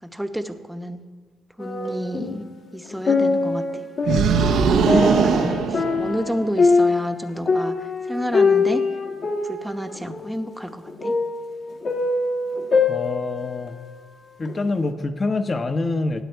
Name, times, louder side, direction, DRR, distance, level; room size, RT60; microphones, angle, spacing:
voice 1, 0.0-1.0 1.6-2.4 2.7-3.7 4.7-8.8 9.4-11.1, equal, 5° right, 7 dB, 1.0 m, -29 dB
sound 1, 1.6-2.5 2.9-14.0 14.4-14.5, left 4 dB, 55° left, 1.6 m, -23 dB
sound 2, 4.1-6.5, right 6 dB, 75° right, 0.9 m, -20 dB
voice 2, 12.9-13.8 14.4-16.2, left 3 dB, 30° left, 9 dB, 1.0 m, -25 dB
16.5 x 9.1 x 4.6 m, 1.5 s
cardioid pair, 90°, 0 cm